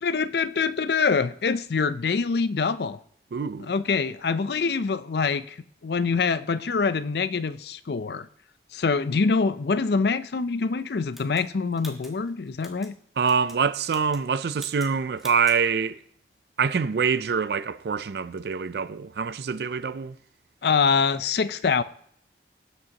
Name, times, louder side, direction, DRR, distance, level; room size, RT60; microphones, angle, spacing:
voice 1, 0.0-3.0 3.6-5.6 5.8-8.3 8.7-12.9 20.6-21.8, left 5 dB, 65° left, 0.5 m, -25 dB
voice 2, 3.3-3.7 13.2-16.0 16.6-20.2, right 6 dB, 65° right, 0.4 m, -25 dB
sound 1, 11.1-12.9 13.2-13.6 13.9-14.3 14.5-14.9 15.2-15.6, equal, ahead, 1.3 m, -45 dB
19.5 x 7.8 x 2.9 m
head